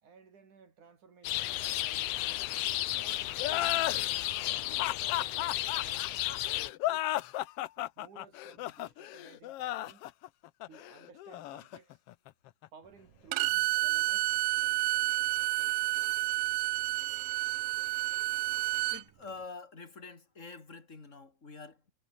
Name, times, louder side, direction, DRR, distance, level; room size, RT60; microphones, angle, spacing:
voice 1, 0.0-2.1 2.9-7.1 7.8-10.1 10.7-12.0 12.7-14.3 16.8-16.9, right 5 dB, 70° right, 5.4 m, -57 dB
sound 1, 1.2-6.7, left 15 dB, 75° left, 1.7 m, -33 dB
sound 2, 3.4-12.7, left 15 dB, 90° left, 1.3 m, -35 dB
Bowed string instrument, 13.3-19.0, right 19 dB, 85° right, 2.2 m, -30 dB
voice 2, 18.9-21.8, left 4 dB, 25° left, 3.4 m, -46 dB
omnidirectional pair, 3.7 m